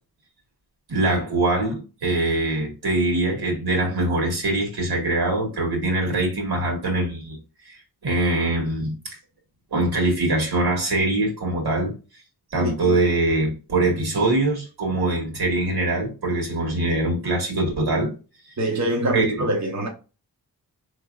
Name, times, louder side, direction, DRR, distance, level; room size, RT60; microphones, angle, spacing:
voice 1, 0.9-7.4 7.6-9.2 9.7-11.9 12.5-18.1 19.1-19.5, right 2 dB, 85° right, 1.9 m, -23 dB
voice 2, 18.6-19.9, right 1 dB, 45° right, 0.9 m, -24 dB
4.3 x 3.2 x 2.4 m
wide cardioid pair, 95°, 38 cm